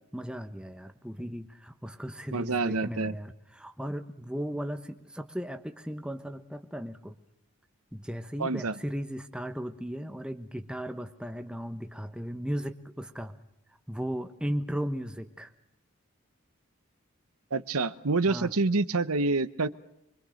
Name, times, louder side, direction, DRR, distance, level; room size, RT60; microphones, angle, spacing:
voice 1, 0.1-7.1 7.9-13.4 13.9-15.5 18.3-18.5, equal, 5° right, 7 dB, 1.2 m, -36 dB
voice 2, 2.3-3.1 8.4-8.7 17.5-19.7, right 3 dB, 80° right, 14 dB, 1.0 m, -27 dB
25.5 x 23.5 x 6.5 m, 0.81 s
head